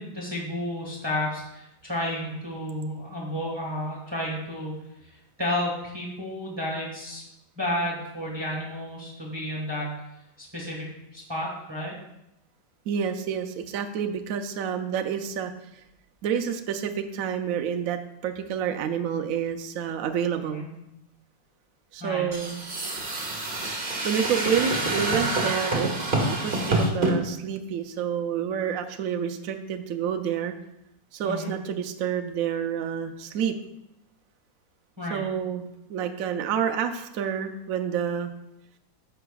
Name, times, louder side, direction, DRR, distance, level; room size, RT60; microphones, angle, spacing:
voice 1, 0.0-4.7 5.0-5.1 5.4-7.2 7.6-10.0 10.4-11.9 20.4-20.6 22.0-22.3 31.2-31.5 35.0-35.2, left 1 dB, 15° right, -2 dB, 1.4 m, -31 dB
voice 2, 12.9-15.8 16.2-20.7 21.9-22.6 24.0-30.5 31.1-33.5 35.1-38.3, right 8 dB, 70° right, 6 dB, 0.8 m, -29 dB
sound 1, 22.3-27.1, right 2 dB, 30° right, 1.4 m, -27 dB
13.5 x 5.8 x 2.3 m, 0.87 s
omnidirectional pair, 1.9 m